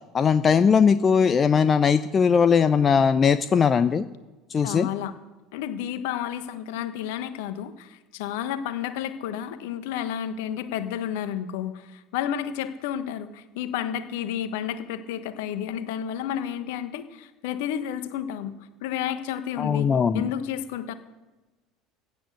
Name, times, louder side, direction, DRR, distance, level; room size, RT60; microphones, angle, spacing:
voice 1, 0.1-4.0 4.5-4.9 19.6-20.3, left 6 dB, 30° left, 12 dB, 0.6 m, -20 dB
voice 2, 4.6-5.1 5.5-18.6 18.8-19.9 20.1-20.9, left 10 dB, 65° left, 11 dB, 1.3 m, -31 dB
16.5 x 10.5 x 6.7 m, 1.2 s
figure-of-eight pair, 70°, 0 cm